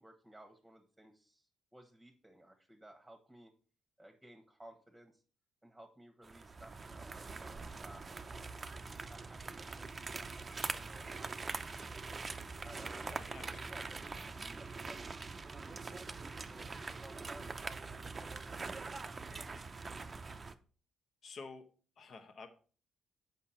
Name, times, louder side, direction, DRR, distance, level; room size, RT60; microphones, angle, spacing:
voice 1, 0.0-3.5 4.0-5.2 5.6-8.5 9.1-12.0 12.6-13.2 13.6-19.4, right 1 dB, 5° right, 2 dB, 1.3 m, -57 dB
sound 1, 6.2-20.5, right 4 dB, 30° right, 0.5 m, -43 dB
voice 2, 13.1-13.5 21.2-21.7 22.0-22.5, left 4 dB, 55° left, 7 dB, 1.1 m, -50 dB
7.3 x 5.4 x 4.3 m, 0.41 s
cardioid pair, 90°, 0 cm